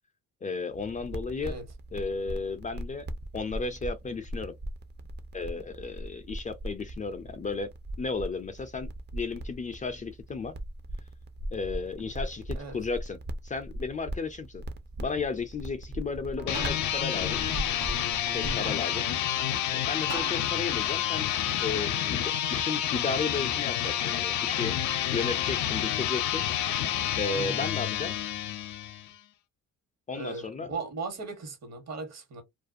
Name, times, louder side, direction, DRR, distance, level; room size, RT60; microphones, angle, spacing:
voice 1, 0.4-1.6 1.9-3.1 3.3-4.6 5.3-7.7 8.0-10.5 11.5-13.2 13.4-14.6 15.0-17.4 18.3-19.1 19.7-21.3 21.6-24.8 25.1-26.4 27.2-28.1 30.1-30.7, left 4 dB, 25° left, 0.4 m, -34 dB
sound 1, 0.7-18.6, right 1 dB, 35° right, 0.5 m, -39 dB
sound 2, 16.1-22.0, right 6 dB, 85° right, 0.8 m, -45 dB
sound 3, 16.4-29.1, left 11 dB, 75° left, 0.5 m, -29 dB
voice 2, 18.4-18.8 27.3-27.7 30.1-32.4, right 4 dB, 60° right, 1.3 m, -38 dB
2.4 x 2.2 x 2.5 m
cardioid pair, 90°, 30 cm